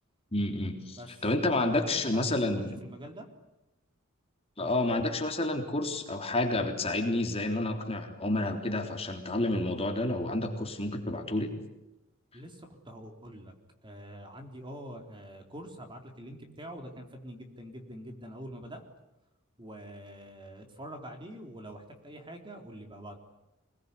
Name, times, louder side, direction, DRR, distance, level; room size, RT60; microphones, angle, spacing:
voice 1, 0.3-2.8 4.6-11.5, left 2 dB, 30° left, 4 dB, 3.6 m, -30 dB
voice 2, 1.0-3.3 4.6-4.7 12.3-13.5 13.8-18.8 19.6-23.2, equal, 25° right, 4 dB, 3.8 m, -45 dB
27.5 x 20.5 x 9.9 m, 0.95 s
head